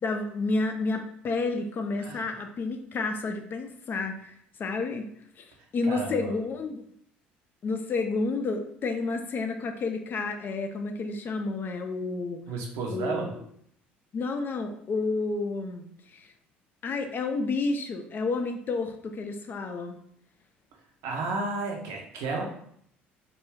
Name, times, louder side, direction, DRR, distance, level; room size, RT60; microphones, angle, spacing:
voice 1, 0.0-4.3 4.6-5.1 5.4-5.5 5.7-6.8 7.6-12.4 12.9-13.4 14.1-16.3 16.8-20.0, left 3 dB, 35° left, 5 dB, 0.4 m, -30 dB
voice 2, 5.8-6.3 12.5-13.3 21.0-22.5, right 3 dB, 60° right, 1 dB, 0.6 m, -32 dB
2.3 x 2.2 x 3.2 m, 0.68 s
figure-of-eight pair, 60°, 6 cm